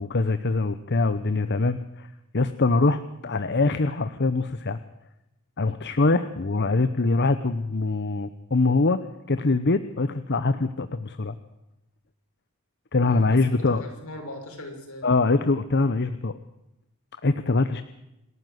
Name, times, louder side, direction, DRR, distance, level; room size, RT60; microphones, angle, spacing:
voice 1, 0.0-2.1 2.3-4.8 5.6-11.3 12.9-13.8 15.0-16.3 17.2-17.8, left 3 dB, 50° left, 12 dB, 0.9 m, -23 dB
voice 2, 13.0-15.1, left 1 dB, 70° left, 3 dB, 6.5 m, -40 dB
27.5 x 13.0 x 8.0 m, 0.92 s
head